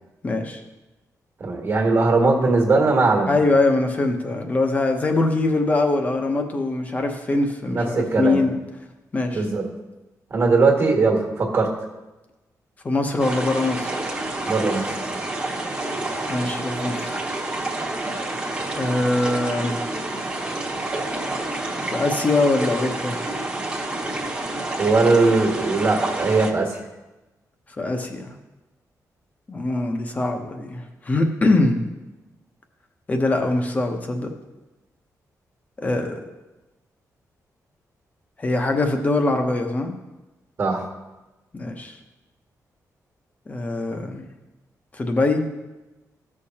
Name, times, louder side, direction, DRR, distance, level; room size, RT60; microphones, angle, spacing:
voice 1, 0.2-0.6 3.3-8.6 9.1-9.4 12.8-13.9 16.3-17.2 18.8-19.8 21.9-23.2 27.8-28.3 29.5-31.8 33.1-34.3 35.8-36.2 38.4-39.9 41.5-42.0 43.5-44.3 44.9-45.5, left 2 dB, 25° left, 5 dB, 0.9 m, -22 dB
voice 2, 1.4-3.4 7.7-8.4 9.3-9.7 10.3-11.7 14.5-15.0 24.8-26.8 40.6-40.8, right 3 dB, 45° right, 1 dB, 1.5 m, -19 dB
sound 1, 13.2-26.5, right 2 dB, 20° right, 1.1 m, -28 dB
15.0 x 6.5 x 2.9 m, 1.1 s
wide cardioid pair, 165°, 6 cm